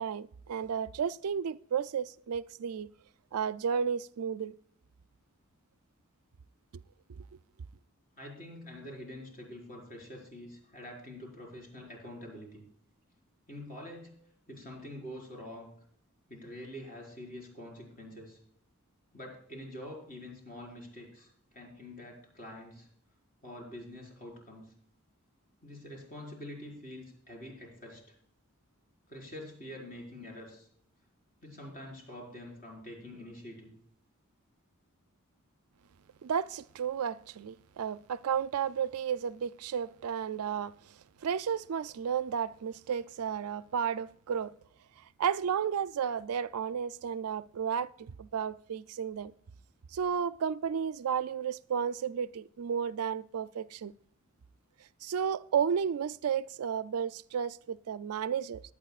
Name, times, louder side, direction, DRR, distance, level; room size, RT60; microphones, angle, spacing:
voice 1, 0.0-2.9 3.3-4.6 7.2-7.3 36.2-40.7 41.2-44.5 45.2-49.3 49.9-53.9 55.0-58.6, right 7 dB, 85° right, 0.4 m, -33 dB
voice 2, 8.2-12.6 13.5-14.1 14.5-15.7 16.3-18.4 19.1-22.9 23.4-24.7 25.6-28.1 29.1-30.7 31.4-33.7, left 1 dB, 40° left, 4.9 m, -46 dB
22.0 x 8.7 x 2.4 m
head